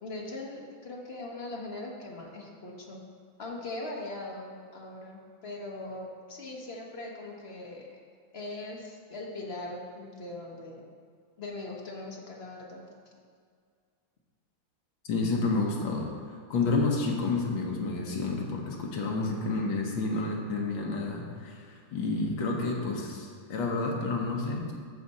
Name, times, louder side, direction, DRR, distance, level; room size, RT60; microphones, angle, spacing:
voice 1, 0.0-3.0 3.4-7.9 8.3-10.8 11.4-12.8, left 2 dB, 40° left, -1 dB, 1.1 m, -40 dB
voice 2, 15.1-16.1 16.5-24.7, left 3 dB, 70° left, -1 dB, 2.0 m, -30 dB
14.0 x 5.0 x 4.2 m, 2.1 s
omnidirectional pair, 2.2 m